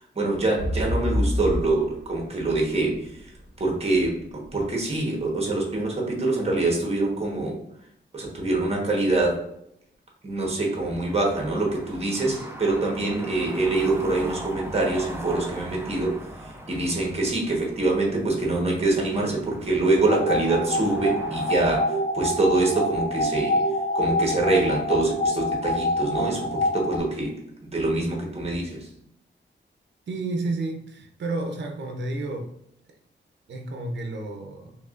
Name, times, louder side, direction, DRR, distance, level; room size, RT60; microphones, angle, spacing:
voice 1, 0.1-3.1 3.6-7.6 8.1-9.4 10.2-16.2 16.7-23.6 23.9-27.4 27.6-28.9, right 2 dB, 30° right, -1 dB, 1.2 m, -25 dB
sound 1, 0.6-4.4 5.0-5.1, equal, 25° left, 1.5 m, -28 dB
sound 2, 11.1-21.5, right 1 dB, 10° right, 0.4 m, -40 dB
sound 3, 20.0-27.0, left 1 dB, 90° left, 1.3 m, -26 dB
voice 2, 30.1-32.5 33.5-34.8, right 2 dB, 65° right, 3 dB, 0.6 m, -31 dB
4.6 x 3.3 x 2.5 m, 0.74 s
wide cardioid pair, 130°, 20 cm